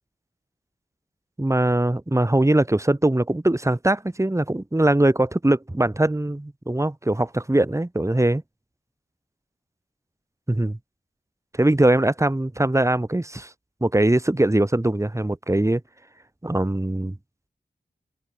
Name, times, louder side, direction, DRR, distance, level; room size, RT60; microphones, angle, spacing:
voice 1, 1.4-8.4 10.5-10.8 11.6-13.5 13.8-15.8 16.4-17.2, right 1 dB, 15° right, 4.3 m, -21 dB
open air
wide cardioid pair, 70°, 17 cm